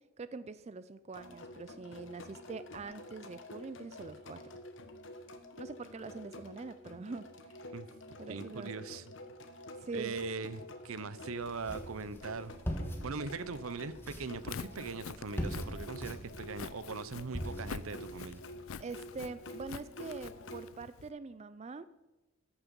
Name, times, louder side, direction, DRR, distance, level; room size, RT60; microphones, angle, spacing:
voice 1, 0.2-4.4 5.6-7.7 8.2-8.8 9.8-10.2 18.8-21.9, right 3 dB, 30° right, 14 dB, 0.3 m, -44 dB
sound 1, 1.1-20.6, left 1 dB, 60° left, 1.2 m, -49 dB
voice 2, 8.3-9.0 9.9-12.5 13.0-18.4, right 4 dB, 80° right, 16 dB, 0.7 m, -40 dB
sound 2, 11.4-18.4, equal, 10° left, 1.4 m, -42 dB
Walk footsteps, 14.3-21.1, left 6 dB, 75° left, 0.5 m, -47 dB
14.0 x 10.0 x 5.3 m, 1.1 s
head